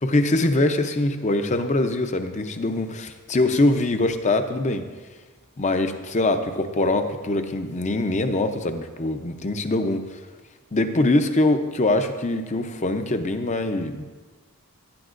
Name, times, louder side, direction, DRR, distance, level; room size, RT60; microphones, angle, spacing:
voice 1, 0.1-4.9 5.6-10.0 10.7-14.0, left 2 dB, 35° left, 8 dB, 0.7 m, -23 dB
17.5 x 10.0 x 2.6 m, 1.4 s
head